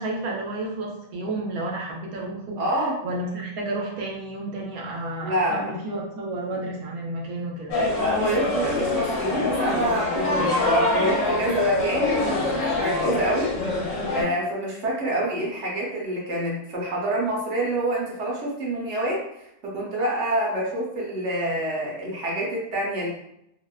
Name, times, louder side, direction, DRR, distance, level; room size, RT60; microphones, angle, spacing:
voice 1, 0.0-7.8, right 2 dB, 85° right, -1 dB, 1.1 m, -31 dB
voice 2, 2.6-3.0 5.2-5.7 8.0-13.6 14.1-19.2 19.6-23.1, right 1 dB, 60° right, -3 dB, 1.0 m, -27 dB
sound 1, 7.7-14.2, left 2 dB, 65° left, 1.0 m, -24 dB
2.7 x 2.0 x 2.2 m, 0.79 s
omnidirectional pair, 1.5 m